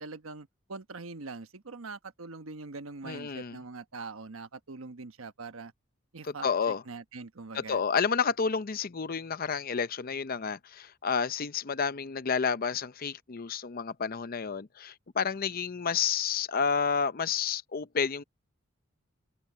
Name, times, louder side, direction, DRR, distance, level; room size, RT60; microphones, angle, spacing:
voice 1, 0.0-5.7 6.1-6.5 6.9-7.8, right 3 dB, 80° right, 1.1 m, -43 dB
voice 2, 3.0-3.6 6.2-6.8 7.5-18.2, left 6 dB, 45° left, 0.6 m, -30 dB
open air
head